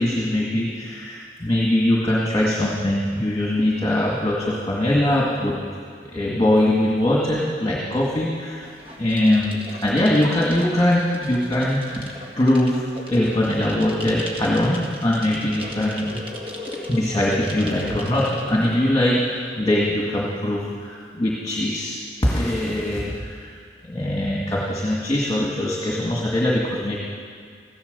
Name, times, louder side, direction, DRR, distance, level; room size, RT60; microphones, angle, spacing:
voice 1, 0.0-5.6 6.0-8.7 9.0-12.1 12.4-16.2 16.9-23.5 23.8-27.0, left 1 dB, 20° left, -4 dB, 1.8 m, -22 dB
sound 1, 8.6-18.9, equal, 30° right, 1.5 m, -37 dB
15.0 x 12.0 x 6.8 m, 2.1 s
head